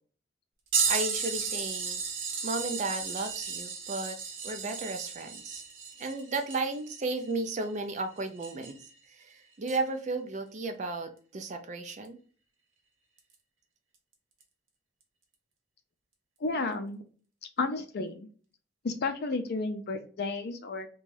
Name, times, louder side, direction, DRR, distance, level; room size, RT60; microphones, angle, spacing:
sound 1, 0.7-8.9 9.7-9.8 12.0-12.1 13.2-13.3 14.4-14.5, right 5 dB, 75° right, 0.8 m, -34 dB
voice 1, 0.9-2.0 2.4-4.2 4.4-5.6 6.0-8.8 9.2-12.2, right 3 dB, 35° right, 7 dB, 0.4 m, -34 dB
voice 2, 16.4-17.0 17.6-18.3 18.8-20.9, left 3 dB, 50° left, 7 dB, 0.5 m, -32 dB
2.6 x 2.3 x 3.2 m, 0.41 s
head